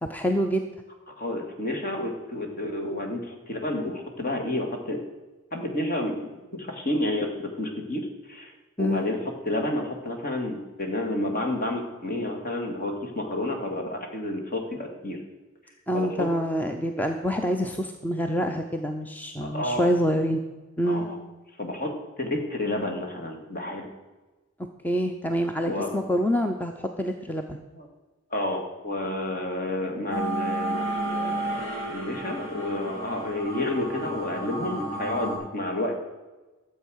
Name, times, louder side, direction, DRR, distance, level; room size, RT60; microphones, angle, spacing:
voice 1, 0.0-0.7 8.8-9.1 15.9-20.4 20.8-21.1 24.8-27.6, equal, 10° left, 5 dB, 0.6 m, -26 dB
voice 2, 1.2-5.0 5.5-8.5 8.8-9.2 9.5-15.2 15.9-16.3 19.4-19.9 20.8-21.2 21.6-21.9 22.2-23.9 25.7-25.9 27.7-27.9 28.3-36.0, left 1 dB, 45° left, 3 dB, 2.0 m, -30 dB
sound 1, 30.1-35.4, right 2 dB, 80° left, 4.4 m, -32 dB
12.5 x 7.6 x 6.3 m, 1.2 s
head